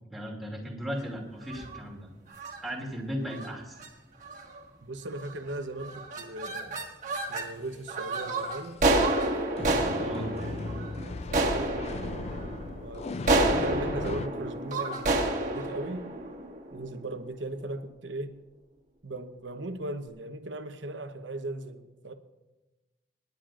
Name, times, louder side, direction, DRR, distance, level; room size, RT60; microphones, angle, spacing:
voice 1, 0.1-2.1 2.6-3.8 10.0-10.3, equal, ahead, 2.5 m, -36 dB
sound 1, 1.4-1.8 2.3-2.6 3.3-3.5 3.8-3.9 4.2-4.6 5.2-5.5 5.8-7.5 7.9-17.1, right 2 dB, 40° right, 1.6 m, -29 dB
voice 2, 4.8-6.8 7.3-8.8 9.6-10.7 11.0-11.8 12.8-16.2 16.7-18.4 19.0-22.1, right 1 dB, 75° right, 0.9 m, -38 dB
sound 2, 7.1-7.2 8.3-8.7 9.6-14.3, left 3 dB, 35° left, 0.3 m, -37 dB
25.0 x 11.0 x 2.5 m
head